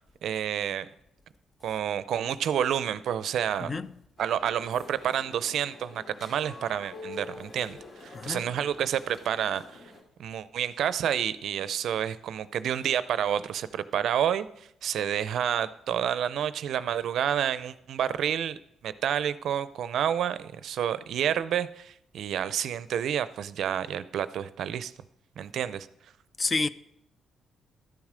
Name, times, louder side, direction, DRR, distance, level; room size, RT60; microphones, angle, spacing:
voice 1, 0.2-0.9 1.6-3.7 4.2-7.8 8.0-9.8 10.2-18.6 18.8-24.9 25.4-25.9, right 9 dB, 70° right, 0.5 m, -29 dB
voice 2, 3.6-3.9 8.1-8.4 26.4-26.7, left 3 dB, 30° left, 0.5 m, -29 dB
sound 1, 4.2-10.0, left 3 dB, 50° left, 2.4 m, -46 dB
12.5 x 7.3 x 5.0 m
cardioid pair, 90°, 0 cm